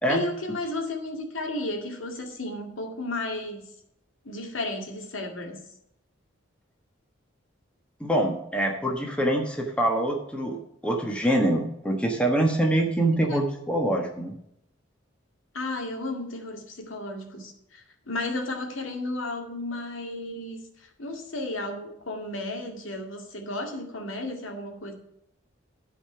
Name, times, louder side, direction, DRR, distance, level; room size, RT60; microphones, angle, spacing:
voice 1, 0.1-3.6 4.2-5.6 13.3-13.4 15.5-24.9, left 2 dB, 80° left, 3 dB, 2.2 m, -33 dB
voice 2, 8.0-10.6 10.8-14.3, right 1 dB, 5° left, 1 dB, 1.3 m, -25 dB
12.5 x 5.1 x 5.6 m, 0.79 s
head